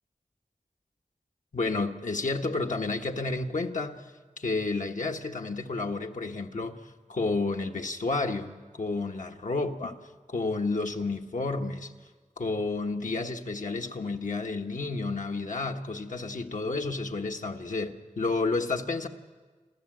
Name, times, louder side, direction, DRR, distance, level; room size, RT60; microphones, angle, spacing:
voice 1, 1.5-4.1 4.4-6.8 7.1-10.0 10.3-11.9 12.4-19.1, left 3 dB, 70° left, 1.3 m, -31 dB
29.0 x 12.5 x 7.7 m
wide cardioid pair, 45°, 14 cm